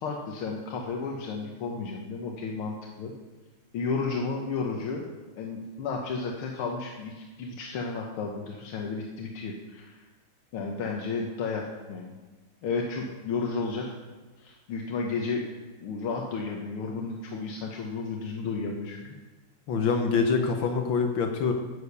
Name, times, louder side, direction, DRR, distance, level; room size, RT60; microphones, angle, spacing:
voice 1, 0.0-3.1 3.7-5.1 5.4-10.0 10.5-12.1 12.6-13.9 14.4-15.5 15.8-19.2, left 4 dB, 85° left, 0 dB, 2.0 m, -32 dB
voice 2, 19.7-21.5, left 5 dB, 70° left, 5 dB, 1.6 m, -25 dB
11.5 x 7.1 x 6.7 m, 1.2 s
omnidirectional pair, 2.3 m